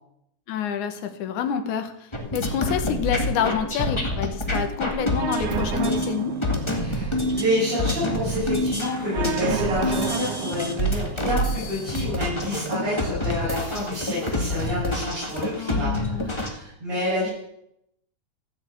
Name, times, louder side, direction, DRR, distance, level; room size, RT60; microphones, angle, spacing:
voice 1, 0.5-6.4 15.6-16.3, left 8 dB, 90° left, 7 dB, 2.6 m, -28 dB
sound 1, 2.1-16.5, left 1 dB, 15° left, 1.3 m, -27 dB
sound 2, 5.2-13.2, right 8 dB, 90° right, 2.5 m, -34 dB
voice 2, 6.6-17.3, left 1 dB, 45° right, -10 dB, 7.5 m, -29 dB
15.0 x 7.0 x 8.4 m, 0.77 s
omnidirectional pair, 3.3 m